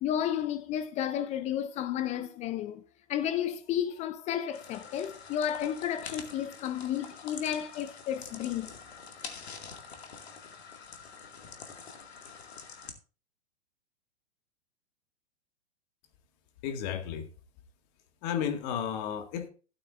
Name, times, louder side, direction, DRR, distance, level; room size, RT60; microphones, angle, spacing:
voice 1, 0.0-2.8 3.1-8.7, left 10 dB, 20° left, 0.6 m, -32 dB
sound 1, 4.5-12.9, left 5 dB, 70° left, 2.3 m, -46 dB
voice 2, 16.6-17.3 18.2-19.5, left 8 dB, 40° left, 2.0 m, -33 dB
15.5 x 8.7 x 2.6 m
figure-of-eight pair, 110°, 33 cm